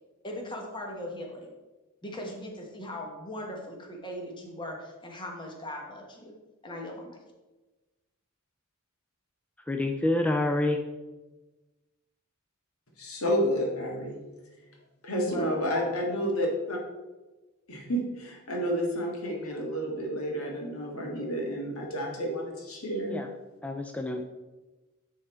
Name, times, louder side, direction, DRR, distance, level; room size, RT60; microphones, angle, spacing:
voice 1, 0.2-1.5 2.0-6.3 6.6-7.2 15.3-16.3, left 1 dB, 20° left, 0 dB, 1.1 m, -39 dB
voice 2, 9.7-10.8 23.1-23.3 23.6-24.2, left 2 dB, 5° left, 3 dB, 0.3 m, -27 dB
voice 3, 13.0-14.2 15.0-16.8 17.7-23.2, equal, 85° left, 0 dB, 1.7 m, -30 dB
9.8 x 3.7 x 4.4 m, 1.2 s
head